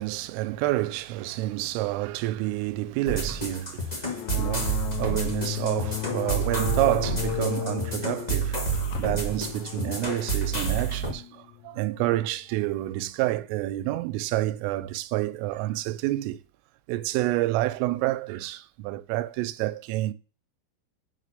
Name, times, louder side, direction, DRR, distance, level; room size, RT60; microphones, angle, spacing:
voice 1, 0.0-8.7 9.0-16.4 16.9-20.1, right 16 dB, 85° right, 3.3 m, -29 dB
sound 1, 3.0-11.1, right 4 dB, 40° left, 0.5 m, -29 dB
sound 2, 4.1-12.3, left 17 dB, 85° left, 2.4 m, -35 dB
sound 3, 8.7-9.1, left 4 dB, 70° left, 3.7 m, -36 dB
7.4 x 6.3 x 6.7 m
omnidirectional pair, 5.7 m